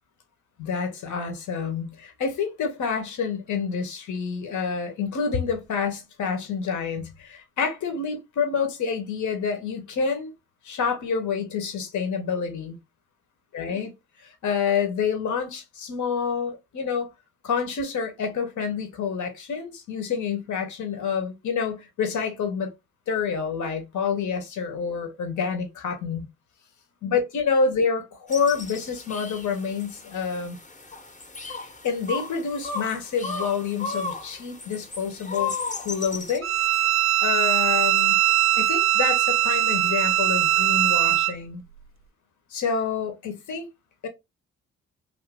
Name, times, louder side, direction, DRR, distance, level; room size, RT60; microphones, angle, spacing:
voice 1, 0.6-10.3 10.6-12.8 13.5-13.9 14.2-17.1 17.4-22.7 23.1-26.3 27.0-30.6 31.6-35.5 35.8-36.5 37.2-38.2 38.5-41.6 42.5-43.7 44.0-44.1, left 6 dB, 60° left, 0.9 m, -28 dB
sound 1, 28.3-36.4, left 4 dB, 25° left, 0.8 m, -35 dB
Bowed string instrument, 36.4-41.3, right 13 dB, 40° right, 0.4 m, -21 dB
2.6 x 2.6 x 3.4 m
hypercardioid pair, 45°, 33 cm